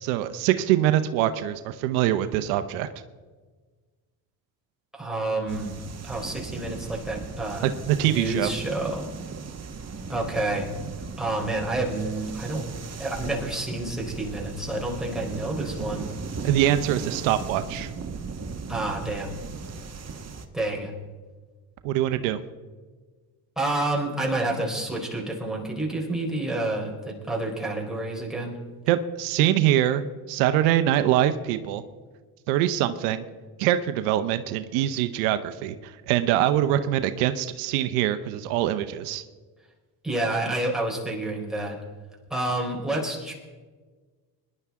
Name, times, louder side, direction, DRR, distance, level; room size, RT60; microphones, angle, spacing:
voice 1, 0.0-2.9 7.6-8.5 16.4-17.9 21.8-22.4 28.9-31.8 32.5-33.2 33.6-39.2, right 12 dB, 85° right, 10 dB, 0.8 m, -24 dB
voice 2, 4.9-5.8 6.0-7.7 8.0-9.1 10.1-10.7 11.2-12.7 13.0-16.1 18.7-19.4 20.5-20.9 23.6-28.6 40.0-41.8 42.3-43.3, right 2 dB, ahead, -2 dB, 4.0 m, -29 dB
sound 1, 5.5-20.5, right 5 dB, 30° right, 1.5 m, -37 dB
21.0 x 11.0 x 3.6 m, 1.4 s
supercardioid pair, 80°, 47 cm